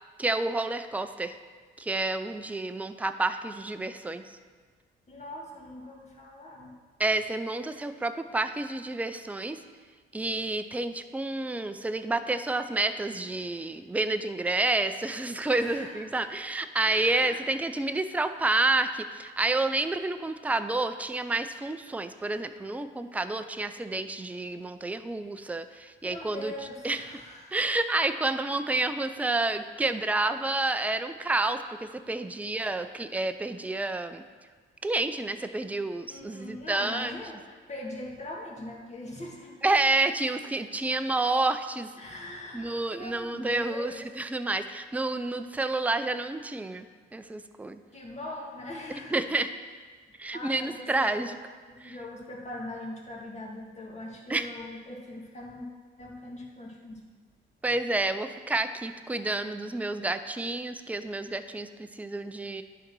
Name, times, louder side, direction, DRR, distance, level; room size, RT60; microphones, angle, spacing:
voice 1, 0.2-1.4 1.8-4.2 7.0-9.6 10.1-26.5 26.8-27.0 27.5-31.6 32.1-34.2 34.8-37.1 39.6-41.9 42.5-46.9 47.1-47.8 49.1-49.5 50.2-51.4 51.8-52.0 54.3-54.5 57.6-62.6, right 2 dB, 5° right, 9 dB, 0.4 m, -29 dB
voice 2, 5.1-6.7 15.6-16.1 16.8-17.4 26.0-27.6 36.1-40.0 42.0-44.1 47.9-49.2 50.3-51.3 51.7-55.7 56.0-57.0, left 1 dB, 35° left, -2 dB, 2.0 m, -41 dB
10.0 x 3.9 x 6.1 m, 1.6 s
cardioid pair, 90°, 20 cm